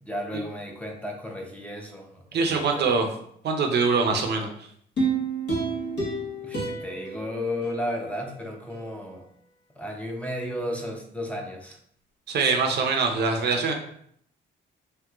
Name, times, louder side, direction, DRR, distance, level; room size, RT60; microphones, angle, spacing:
voice 1, 0.0-2.9 6.4-9.3 9.8-11.8, left 1 dB, 5° left, 0 dB, 0.5 m, -34 dB
voice 2, 2.3-3.1 3.4-4.5 12.3-13.7, right 4 dB, 55° right, 3 dB, 0.5 m, -23 dB
sound 1, 5.0-8.3 8.7-8.8, right 3 dB, 60° left, 1.2 m, -30 dB
3.0 x 2.9 x 2.3 m, 0.66 s
cardioid pair, 90°, 20 cm